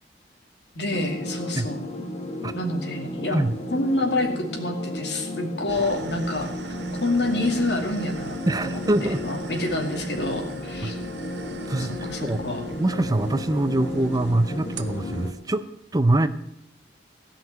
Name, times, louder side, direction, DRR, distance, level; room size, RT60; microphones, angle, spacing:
voice 1, 0.7-1.9 2.5-3.4 3.7-6.5 7.0-11.0 11.8-12.7, left 2 dB, 70° left, 3 dB, 2.4 m, -27 dB
sound 1, 0.9-15.3, left 1 dB, 40° left, 1.5 m, -34 dB
sound 2, 5.7-15.3, right 4 dB, 70° right, 1.0 m, -42 dB
voice 2, 8.5-9.2 10.8-10.9 11.7-11.9 12.2-12.4 12.8-16.3, right 1 dB, 20° right, 12 dB, 0.5 m, -24 dB
16.5 x 5.7 x 9.0 m, 0.79 s
head